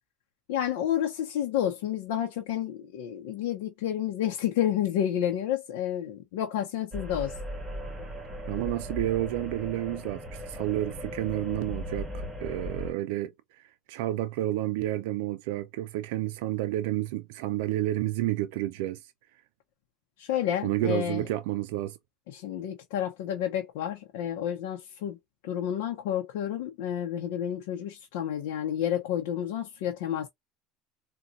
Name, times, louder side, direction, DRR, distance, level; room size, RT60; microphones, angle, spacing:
voice 1, 0.5-7.3 20.2-21.3 22.3-25.2 25.4-30.3, left 10 dB, 85° left, 0.7 m, -30 dB
sound 1, 6.9-12.9, equal, 25° right, 1.7 m, -38 dB
voice 2, 8.5-19.0 20.6-22.0, right 15 dB, 80° right, 0.4 m, -30 dB
3.9 x 2.3 x 2.5 m
supercardioid pair, 100°, 0 cm